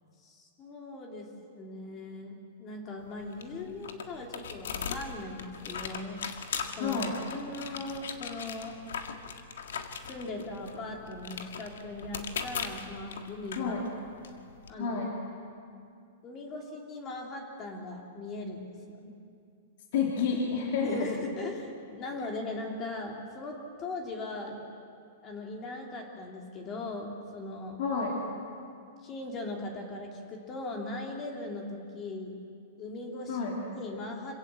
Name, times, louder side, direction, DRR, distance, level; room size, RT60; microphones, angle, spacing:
voice 1, 0.2-1.3 1.6-6.4 6.8-7.0 7.3-8.8 10.1-13.7 14.7-15.0 16.2-19.2 20.8-24.6 25.2-27.8 29.0-32.4 32.8-34.3, left 2 dB, 25° left, 1 dB, 2.8 m, -39 dB
sound 1, 3.0-14.7, left 6 dB, 85° left, 1.7 m, -40 dB
voice 2, 6.8-7.1 13.6-13.8 14.8-15.1 19.9-21.1 27.8-28.1 33.3-33.5, left 5 dB, 60° left, -2 dB, 3.3 m, -29 dB
26.5 x 17.0 x 7.6 m, 2.4 s
hypercardioid pair, 150°, 0 cm